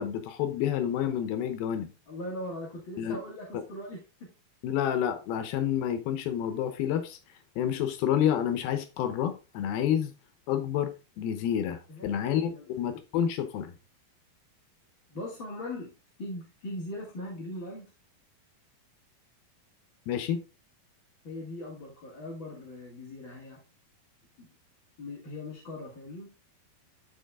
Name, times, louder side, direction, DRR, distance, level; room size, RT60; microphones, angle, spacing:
voice 1, 0.0-1.9 3.0-3.2 4.6-7.2 7.6-10.1 10.5-10.9 11.2-13.8 20.1-20.4, left 9 dB, 85° left, 2.9 m, -29 dB
voice 2, 2.1-4.3 11.9-12.6 15.1-15.9 16.2-17.9 21.2-23.6 24.4-24.5 25.0-26.3, left 1 dB, 35° left, 2.6 m, -40 dB
12.0 x 4.7 x 3.6 m
omnidirectional pair, 4.2 m